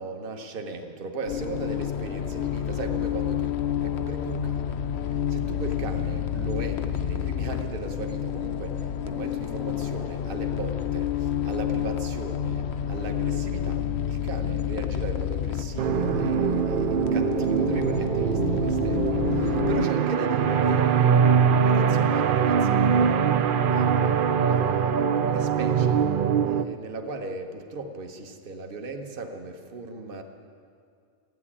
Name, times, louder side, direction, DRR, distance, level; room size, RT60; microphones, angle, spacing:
voice 1, 0.0-26.1 26.4-30.2, right 3 dB, 40° right, 5 dB, 1.1 m, -37 dB
sound 1, 1.3-19.9, left 10 dB, 60° left, 0.7 m, -29 dB
sound 2, 15.8-26.6, right 7 dB, 85° right, 0.4 m, -22 dB
14.5 x 8.5 x 9.8 m, 2.3 s
omnidirectional pair, 1.5 m